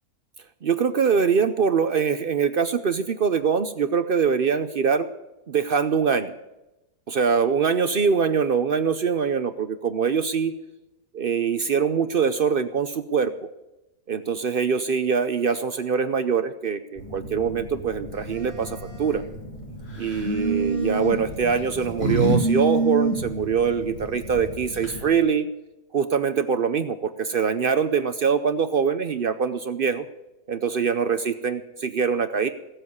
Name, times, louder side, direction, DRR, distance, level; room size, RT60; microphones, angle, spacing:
voice 1, 0.6-5.1 5.5-6.3 7.1-10.5 11.1-13.3 14.1-19.2 20.0-25.5 25.9-30.0 30.5-32.5, right 6 dB, 55° right, 10 dB, 0.6 m, -23 dB
Telephone, 17.0-25.0, right 2 dB, 20° left, 2.6 m, -30 dB
sound 1, 19.9-20.3 21.3-22.4 22.7-22.8 24.4-24.5 24.7-25.2, right 2 dB, 40° left, 3.8 m, -27 dB
16.0 x 7.8 x 9.5 m, 0.98 s
omnidirectional pair, 1.6 m